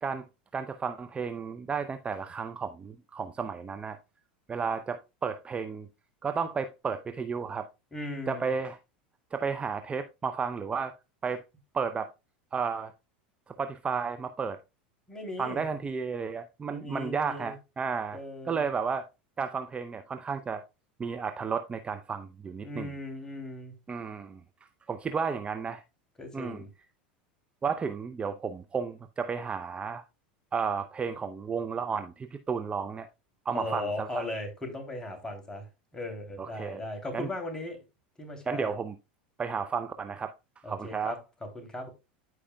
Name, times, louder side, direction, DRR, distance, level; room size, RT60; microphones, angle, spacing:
voice 1, 0.5-4.0 4.5-5.9 6.2-7.7 8.3-8.8 9.3-10.9 11.2-11.4 11.7-12.1 12.5-12.9 13.5-14.6 15.4-18.2 18.5-19.1 19.4-20.6 21.0-22.9 23.9-24.4 24.9-25.8 26.3-26.6 27.6-30.0 30.5-33.1 33.5-34.3 36.4-36.8 37.1-37.3 38.5-38.9 39.4-40.3 40.7-41.1, right 5 dB, 20° right, 0.6 m, -32 dB
voice 2, 7.9-8.5 15.1-15.7 16.7-17.5 18.1-18.6 22.6-23.7 26.2-26.7 33.5-35.7 35.9-37.8 38.2-38.7 40.6-41.9, left 2 dB, 15° left, 3.0 m, -38 dB
13.5 x 4.9 x 2.2 m
hypercardioid pair, 95°, 5 cm